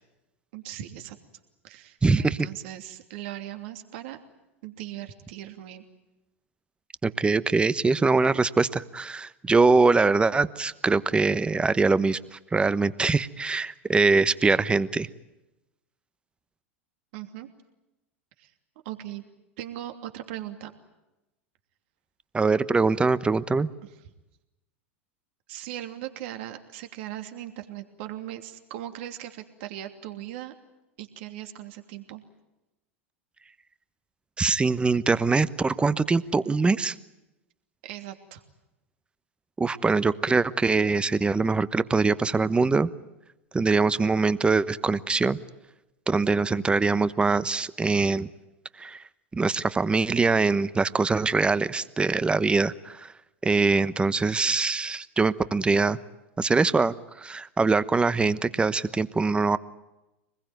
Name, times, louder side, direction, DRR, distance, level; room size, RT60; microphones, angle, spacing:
voice 1, 0.5-1.2 1.6-4.2 4.6-5.8 17.1-17.5 18.4-18.5 18.8-19.2 19.6-20.7 25.5-30.5 31.0-32.2 37.8-38.4, right 13 dB, 65° right, 6 dB, 2.9 m, -39 dB
voice 2, 2.0-2.5 7.0-15.1 22.3-23.7 34.4-36.9 39.6-42.9 43.5-45.4 46.1-48.3 48.8-49.0 49.3-53.1 53.4-56.0 56.4-59.6, right 4 dB, 15° right, 15 dB, 1.1 m, -23 dB
25.5 x 21.0 x 9.3 m, 0.98 s
hypercardioid pair, 90°, 7 cm